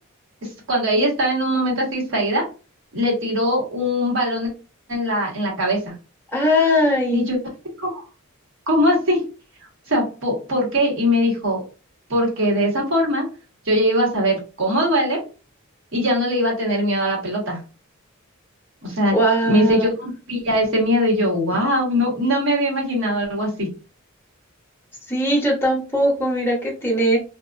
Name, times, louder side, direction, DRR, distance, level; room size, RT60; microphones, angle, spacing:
voice 1, 0.7-2.4 2.9-4.5 4.9-5.9 7.1-7.4 7.8-8.0 8.7-9.2 9.9-11.6 12.1-13.3 13.7-15.2 15.9-17.6 18.8-19.2 19.4-23.7, equal, 65° right, -1 dB, 1.2 m, -21 dB
voice 2, 6.3-7.2 19.1-19.9 25.1-27.2, equal, 10° left, -2 dB, 0.7 m, -20 dB
2.4 x 2.3 x 2.2 m, 0.33 s
head